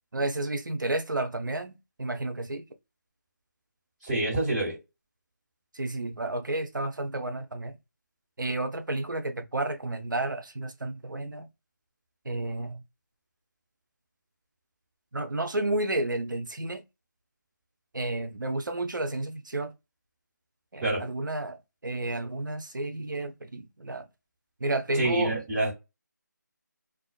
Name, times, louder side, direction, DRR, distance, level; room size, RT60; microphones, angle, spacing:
voice 1, 0.1-2.6 5.7-7.7 8.4-11.5 12.3-12.8 15.1-16.8 17.9-19.7 20.7-24.0 24.6-25.3, right 2 dB, 90° right, 0.5 m, -31 dB
voice 2, 4.0-4.8 20.8-21.1 24.9-25.7, right 2 dB, 20° right, 1.5 m, -27 dB
2.4 x 2.3 x 2.3 m
figure-of-eight pair, 165°, 10 cm